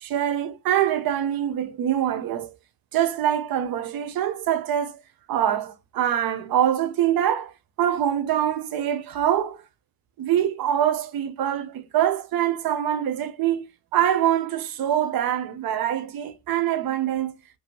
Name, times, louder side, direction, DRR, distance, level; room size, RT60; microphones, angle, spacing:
voice 1, 0.0-2.6 2.9-5.0 5.3-7.5 7.8-9.6 10.2-13.6 13.9-17.3, right 10 dB, 55° right, 0.7 m, -24 dB
2.7 x 2.5 x 2.9 m
cardioid pair, 90°, 44 cm